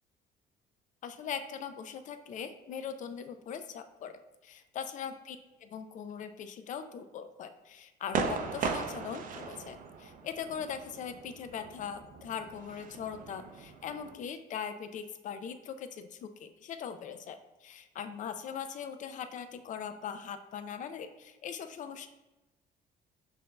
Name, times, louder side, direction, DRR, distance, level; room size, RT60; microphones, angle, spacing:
voice 1, 1.0-22.1, left 7 dB, 50° left, 9 dB, 0.4 m, -41 dB
sound 1, 8.1-14.1, right 5 dB, 50° right, 0.4 m, -38 dB
5.5 x 2.6 x 2.2 m, 1.0 s
cardioid pair, 110°, 17 cm